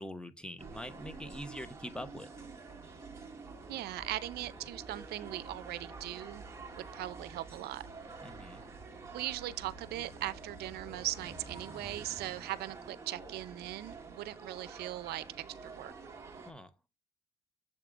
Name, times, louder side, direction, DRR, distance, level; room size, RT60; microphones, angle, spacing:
voice 1, 0.0-2.3 8.2-8.6 16.5-16.7, equal, 5° left, 0.9 m, -44 dB
sound 1, 0.6-16.5, right 4 dB, 15° right, 1.3 m, -48 dB
sound 2, 3.5-11.5, left 1 dB, 75° left, 1.9 m, -57 dB
voice 2, 3.7-6.4 6.8-7.8 9.1-15.2 15.6-15.9, right 15 dB, 70° right, 0.5 m, -39 dB
7.4 x 3.7 x 3.6 m
cardioid pair, 110°, 17 cm